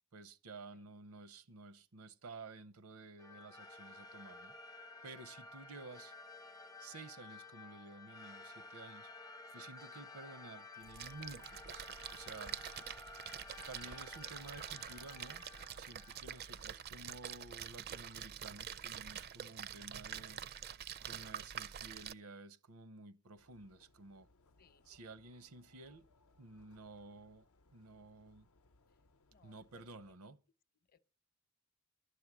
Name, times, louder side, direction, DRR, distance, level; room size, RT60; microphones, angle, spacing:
voice 1, 0.1-4.5 5.0-6.1 6.8-9.1 9.5-12.6 13.7-15.5 15.7-20.4 21.0-24.3 24.9-26.1 26.4-28.5 29.4-30.4, right 3 dB, 80° right, 0.8 m, -53 dB
sound 1, 3.2-17.0, left 3 dB, 15° left, 0.5 m, -53 dB
Splash splatter, 10.8-22.1, right 9 dB, 45° right, 0.5 m, -46 dB
sound 2, 23.4-30.2, left 2 dB, 75° left, 0.7 m, -70 dB
voice 2, 29.3-30.1 30.9-31.0, left 7 dB, 45° left, 0.8 m, -67 dB
12.0 x 8.4 x 6.0 m
head